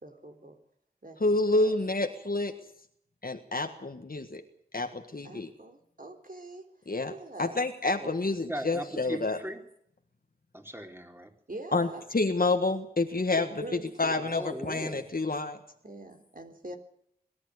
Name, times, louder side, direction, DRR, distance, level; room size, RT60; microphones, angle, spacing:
voice 1, 0.0-0.6 1.0-1.2 1.5-1.7 5.2-6.6 7.1-7.6 11.5-12.0 13.4-14.4 15.8-16.8, right 2 dB, 55° right, 5 dB, 3.7 m, -43 dB
voice 2, 1.2-2.5 3.2-4.4 4.7-5.5 6.9-9.4 11.7-13.5 14.0-15.6, left 2 dB, 60° left, 5 dB, 1.6 m, -28 dB
voice 3, 8.5-9.6 10.5-11.3 14.3-15.1, right 1 dB, 15° right, 3 dB, 4.1 m, -38 dB
23.0 x 12.5 x 9.6 m, 0.70 s
wide cardioid pair, 45°, 17 cm